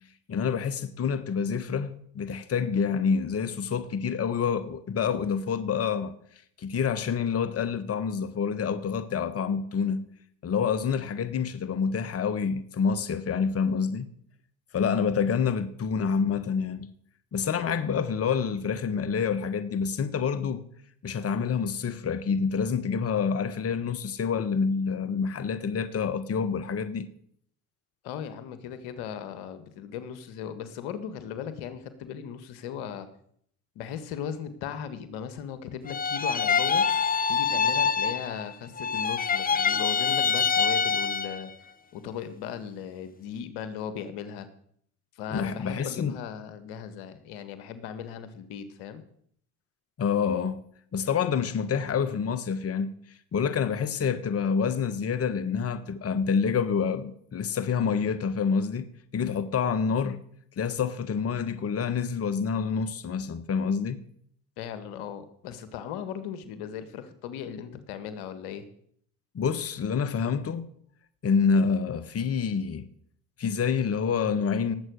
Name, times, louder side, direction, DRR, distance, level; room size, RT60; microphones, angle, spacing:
voice 1, 0.3-6.1 6.6-10.1 10.4-14.1 14.7-16.9 17.3-20.6 21.0-27.1 45.3-46.1 50.0-50.6 50.9-52.9 53.3-58.9 59.1-60.2 60.6-64.0 69.3-70.7 71.2-72.9 73.4-74.7, left 6 dB, 40° left, 1.4 m, -27 dB
voice 2, 28.0-33.1 33.8-36.9 37.3-44.5 45.2-49.0 64.6-68.7, left 8 dB, 75° left, 1.7 m, -37 dB
sound 1, 35.9-38.5 38.8-41.5, left 6 dB, 25° left, 0.8 m, -25 dB
19.0 x 8.0 x 6.4 m
supercardioid pair, 75°, 38 cm